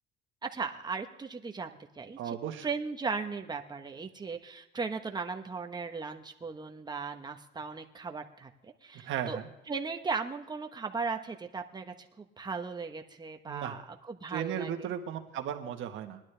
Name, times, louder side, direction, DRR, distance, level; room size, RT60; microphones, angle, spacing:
voice 1, 0.4-1.7 2.0-2.3 2.6-8.5 8.8-9.4 9.7-13.8 14.1-14.9, right 4 dB, 20° right, 4 dB, 1.1 m, -37 dB
voice 2, 2.2-2.7 9.0-9.5 13.5-13.8 14.3-16.2, right 9 dB, 70° right, 5 dB, 1.5 m, -36 dB
19.5 x 11.5 x 3.4 m, 0.92 s
cardioid pair, 120°, 21 cm